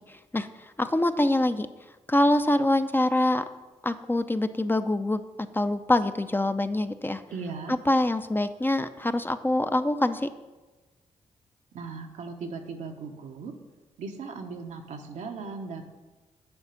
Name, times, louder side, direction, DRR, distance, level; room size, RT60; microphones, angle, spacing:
voice 1, 0.1-0.5 0.8-1.7 2.1-3.4 3.8-7.2 7.7-10.3, left 1 dB, 15° left, 10 dB, 0.5 m, -25 dB
voice 2, 7.3-7.8 11.7-13.5 14.0-15.8, right 4 dB, 80° right, 4 dB, 1.0 m, -37 dB
7.0 x 4.9 x 6.9 m, 1.2 s
supercardioid pair, 50°, 12 cm